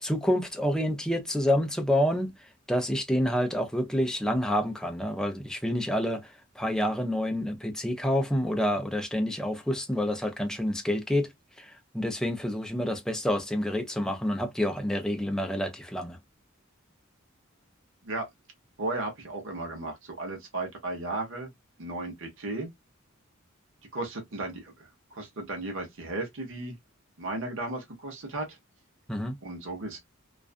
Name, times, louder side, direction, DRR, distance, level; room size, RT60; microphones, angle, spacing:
voice 1, 0.0-2.3 2.7-6.3 6.6-11.3 11.6-16.2 29.1-29.4, equal, 5° left, 0.5 m, -28 dB
voice 2, 18.8-21.5 21.8-22.7 23.9-26.7 27.2-28.6 29.4-30.0, right 2 dB, 65° right, 0.8 m, -35 dB
2.4 x 2.3 x 2.3 m
head